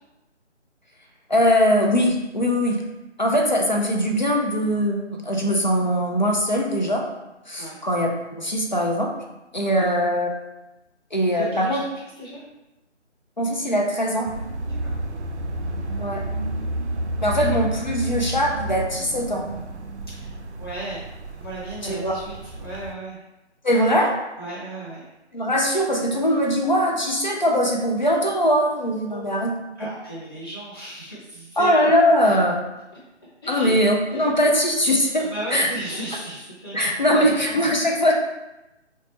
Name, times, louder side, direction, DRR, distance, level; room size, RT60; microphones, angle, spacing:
voice 1, 1.3-2.8 3.2-7.1 7.5-9.1 9.5-10.3 11.1-11.8 13.4-14.3 16.0-16.3 17.2-19.5 21.8-22.1 23.6-24.1 25.3-29.5 31.6-32.6 33.5-35.2 35.5-35.7 36.7-38.1, equal, 40° left, 0 dB, 0.4 m, -21 dB
voice 2, 11.3-12.4 14.7-15.0 20.1-23.2 24.4-25.0 29.1-29.2 29.8-31.7 32.2-32.4 33.4-33.7 34.1-34.3 35.1-37.7, right 1 dB, 20° left, -9 dB, 0.9 m, -36 dB
sound 1, 14.3-22.9, right 1 dB, 70° right, 0.5 m, -30 dB
3.7 x 2.2 x 2.9 m, 0.98 s
figure-of-eight pair, 155°, 35 cm